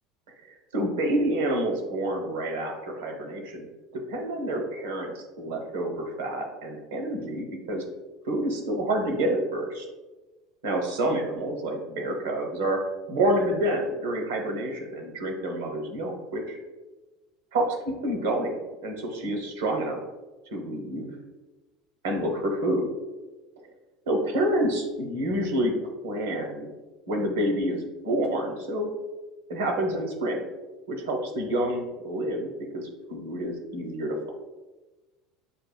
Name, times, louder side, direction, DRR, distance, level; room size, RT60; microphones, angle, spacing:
voice 1, 0.5-3.6 3.9-7.8 8.2-9.8 10.6-16.6 17.5-20.0 20.5-21.1 22.0-22.9 23.6-23.7 24.1-25.8 26.0-26.7 27.1-28.9 29.5-30.5 30.9-34.3, right 1 dB, 80° right, 2 dB, 0.9 m, -28 dB
6.9 x 2.6 x 2.2 m, 1.2 s
hypercardioid pair, 85°, 0 cm